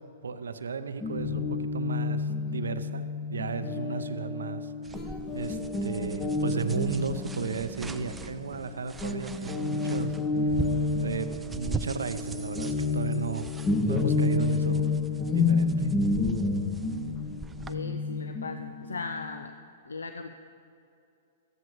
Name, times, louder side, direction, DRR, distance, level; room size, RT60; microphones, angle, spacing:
voice 1, 0.2-3.0 3.3-4.7 5.3-10.6 11.0-13.5 13.8-14.9 15.3-15.9, right 5 dB, 80° right, 11 dB, 0.5 m, -34 dB
Guitar, 1.0-8.7 9.0-19.4, left 3 dB, 25° left, 0.9 m, -30 dB
sound 1, 4.8-17.7, right 3 dB, 15° right, 0.4 m, -41 dB
voice 2, 17.6-19.6 19.8-20.3, left 4 dB, 85° left, 8 dB, 0.4 m, -38 dB
13.5 x 11.0 x 3.1 m, 2.7 s
hypercardioid pair, 115°, 0 cm